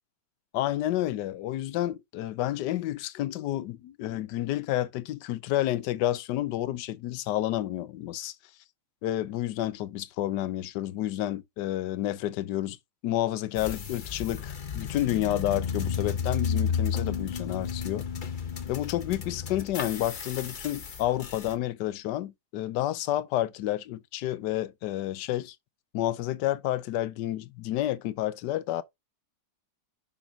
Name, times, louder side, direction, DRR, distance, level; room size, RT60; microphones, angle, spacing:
voice 1, 0.5-8.3 9.0-12.8 13.0-18.1 18.7-25.6 25.9-28.8, left 14 dB, 75° left, 1.3 m, -30 dB
sound 1, 13.6-21.5, left 7 dB, 45° left, 0.6 m, -32 dB
5.9 x 5.8 x 3.6 m
omnidirectional pair, 1.9 m